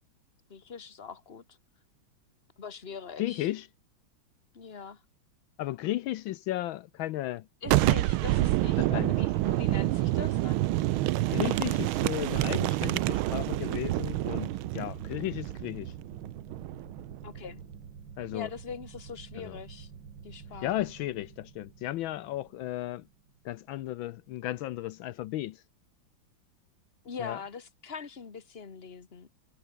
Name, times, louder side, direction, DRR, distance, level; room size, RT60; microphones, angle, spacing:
voice 1, 0.5-1.4 2.6-3.5 4.5-5.0 7.6-10.6 17.2-17.6 18.3-19.9 20.2-20.9 27.0-29.3, left 6 dB, 30° left, 1.8 m, -42 dB
voice 2, 3.2-3.7 5.6-7.5 8.8-9.2 9.4-9.6 11.3-15.9 18.2-18.5 19.4-19.6 20.6-23.0 23.4-25.6 27.2-27.4, left 15 dB, 80° left, 1.4 m, -34 dB
Boom, 7.6-17.2, right 16 dB, 85° right, 1.5 m, -28 dB
sound 1, 10.8-24.0, right 6 dB, 65° right, 2.8 m, -48 dB
omnidirectional pair, 2.2 m